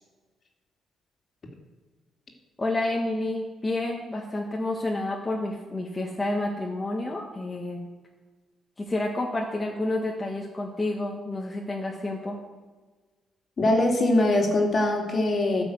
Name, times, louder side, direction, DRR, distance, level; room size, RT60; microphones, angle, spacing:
voice 1, 2.6-7.9 8.8-12.4, left 2 dB, 20° left, -1 dB, 1.7 m, -29 dB
voice 2, 13.6-15.6, left 1 dB, 45° left, 2 dB, 2.6 m, -22 dB
12.5 x 6.1 x 8.0 m, 1.3 s
cardioid pair, 90°, 0 cm